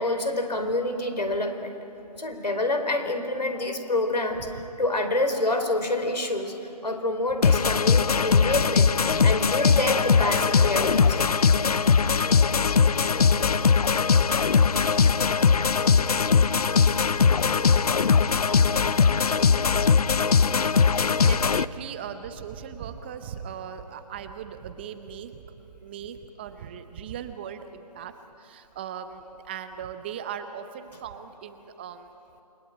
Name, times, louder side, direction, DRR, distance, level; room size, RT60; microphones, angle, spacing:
voice 1, 0.0-1.7 2.2-6.5 6.8-11.3, left 2 dB, 85° left, 7 dB, 4.4 m, -27 dB
sound 1, 7.4-21.6, left 5 dB, 65° left, 0.7 m, -20 dB
voice 2, 21.2-25.5 25.8-28.1 28.4-32.1, right 8 dB, 15° right, 9 dB, 0.7 m, -38 dB
29.0 x 22.0 x 9.1 m, 3.0 s
figure-of-eight pair, 155°, 21 cm